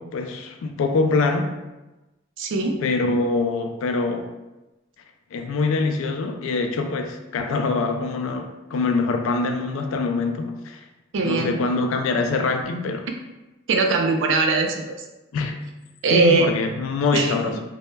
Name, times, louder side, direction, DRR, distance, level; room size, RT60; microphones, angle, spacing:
voice 1, 0.0-1.6 2.8-4.3 5.3-10.8 11.2-13.1 15.3-15.7 16.1-17.6, left 3 dB, 85° left, 5 dB, 0.3 m, -24 dB
voice 2, 2.4-2.8 11.1-11.5 13.7-15.0 16.0-16.5 17.1-17.3, right 3 dB, 65° right, 3 dB, 0.4 m, -20 dB
2.1 x 2.0 x 3.1 m, 1.0 s
head